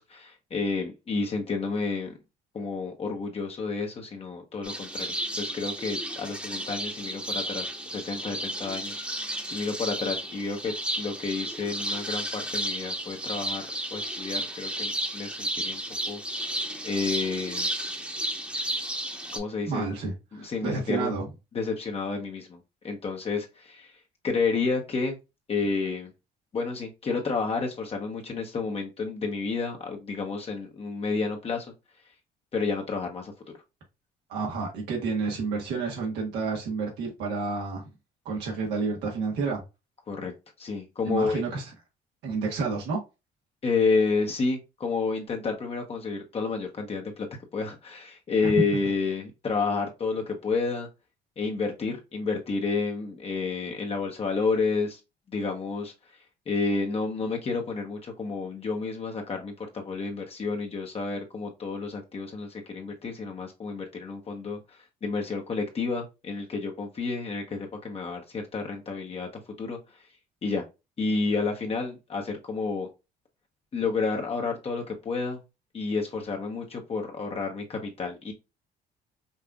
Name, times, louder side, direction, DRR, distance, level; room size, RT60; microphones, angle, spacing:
voice 1, 0.0-2.1 2.5-5.1 5.4-13.6 13.9-16.2 16.8-17.7 19.3-19.9 20.3-21.1 21.5-22.6 22.8-23.9 24.2-25.2 25.5-26.1 26.5-31.7 32.5-33.3 40.1-40.3 40.6-41.4 43.6-47.3 47.5-50.9 51.4-55.0 55.3-55.9 56.5-69.3 69.6-70.0 70.4-70.6 71.0-72.9 73.7-75.4 75.7-78.3, left 4 dB, 35° left, 0.9 m, -30 dB
sound 1, 4.6-19.4, right 1 dB, 5° right, 1.0 m, -33 dB
voice 2, 19.6-21.2 34.3-37.9 38.2-39.6 41.0-41.7 42.2-43.0 48.4-48.5, right 4 dB, 85° right, 1.4 m, -30 dB
5.4 x 2.5 x 2.3 m
cardioid pair, 110°, 17 cm